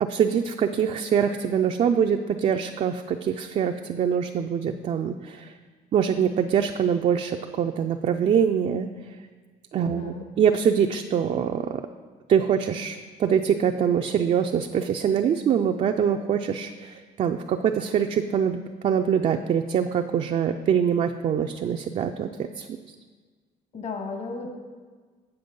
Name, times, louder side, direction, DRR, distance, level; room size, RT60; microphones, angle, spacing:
voice 1, 0.0-5.5 5.9-9.1 9.7-11.8 12.3-22.7, right 8 dB, 40° right, 4 dB, 0.4 m, -24 dB
voice 2, 9.8-10.2 23.7-24.5, left 4 dB, 40° left, 3 dB, 1.2 m, -33 dB
7.9 x 7.2 x 5.2 m, 1.5 s
cardioid pair, 110°, 17 cm